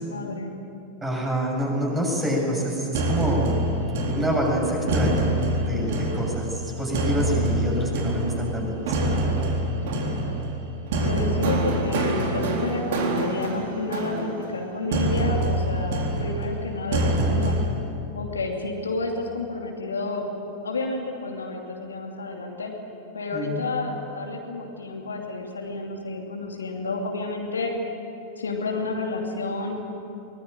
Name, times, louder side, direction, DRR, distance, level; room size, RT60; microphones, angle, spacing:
voice 1, 0.1-0.5 11.0-17.6 18.1-20.3 20.6-22.7 23.1-27.7 28.4-29.7, left 2 dB, 75° left, 1 dB, 2.7 m, -30 dB
voice 2, 1.0-3.6 3.9-5.3 5.6-9.1 23.3-23.6, equal, 15° right, -1 dB, 7.5 m, -27 dB
sound 1, 2.9-17.7, right 1 dB, 55° right, 3.9 m, -26 dB
23.5 x 20.0 x 9.0 m, 2.8 s
figure-of-eight pair, 90°, 0 cm